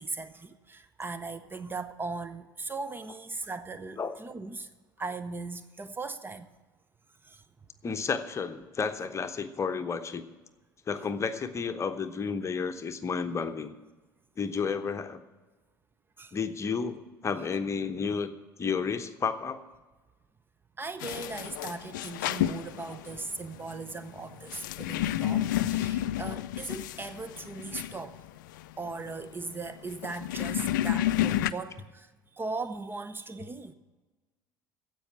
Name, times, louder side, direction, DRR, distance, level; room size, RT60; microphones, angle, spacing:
voice 1, 0.0-4.7 5.0-6.5 7.2-7.4 16.2-16.4 17.3-17.6 20.8-28.2 28.8-33.7, right 3 dB, 20° right, 0.7 m, -38 dB
voice 2, 7.8-10.2 10.9-13.8 14.4-15.2 16.3-18.3 18.6-19.6, left 5 dB, 25° left, 0.9 m, -31 dB
sound 1, 21.0-31.5, left 13 dB, 65° left, 0.4 m, -31 dB
15.5 x 5.5 x 9.0 m
figure-of-eight pair, 65°, 11 cm